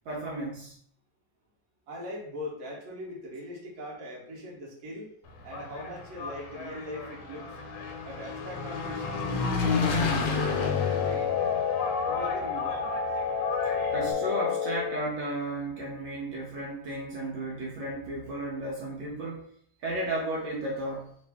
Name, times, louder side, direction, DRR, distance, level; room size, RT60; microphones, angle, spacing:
voice 1, 0.0-0.8 13.9-19.5 19.8-21.2, right 1 dB, 75° right, -3 dB, 1.4 m, -34 dB
voice 2, 1.9-5.1 5.4-7.6 8.0-11.5 12.1-12.9, equal, 50° right, -4 dB, 1.3 m, -40 dB
Engine, 5.3-14.1, left 4 dB, 90° left, 1.4 m, -32 dB
sound 1, 10.2-15.1, left 6 dB, 70° left, 1.2 m, -30 dB
3.3 x 2.4 x 3.4 m, 0.67 s
omnidirectional pair, 2.1 m